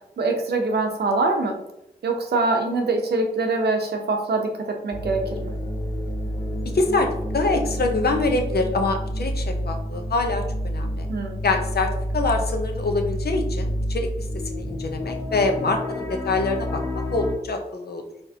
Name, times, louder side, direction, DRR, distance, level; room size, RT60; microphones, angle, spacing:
voice 1, 0.2-1.6 2.0-5.5 11.1-11.4, right 3 dB, 90° right, 3 dB, 0.7 m, -24 dB
sound 1, 4.9-17.3, equal, 20° left, 1.3 m, -29 dB
voice 2, 6.7-11.1 11.4-16.8 17.1-18.0, left 3 dB, 75° left, 4 dB, 0.8 m, -25 dB
4.3 x 3.4 x 2.8 m, 0.84 s
cardioid pair, 40°, 16 cm